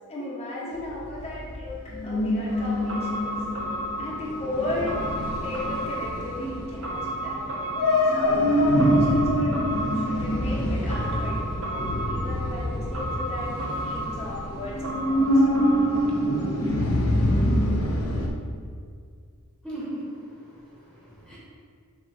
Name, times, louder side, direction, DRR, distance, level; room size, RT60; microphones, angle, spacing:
voice 1, 0.1-3.3 4.0-4.9 5.4-7.4 8.0-9.5 9.9-15.4, left 1 dB, 30° left, -7 dB, 1.0 m, -36 dB
sound 1, 0.7-18.3, equal, 70° left, 0.8 m, -25 dB
sound 2, 2.5-16.7 17.0-17.1, right 1 dB, 60° right, 0.9 m, -34 dB
voice 2, 19.6-21.4, right 1 dB, ahead, -9 dB, 1.3 m, -38 dB
6.9 x 3.2 x 4.4 m, 2.1 s
head